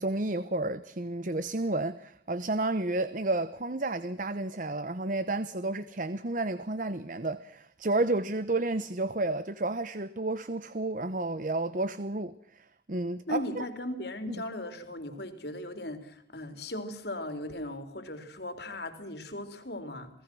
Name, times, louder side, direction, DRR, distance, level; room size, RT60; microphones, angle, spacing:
voice 1, 0.0-13.6 14.3-14.4, right 2 dB, 45° right, 1.0 m, -31 dB
voice 2, 13.3-20.1, left 1 dB, 60° left, 3.8 m, -37 dB
28.5 x 19.5 x 6.2 m
head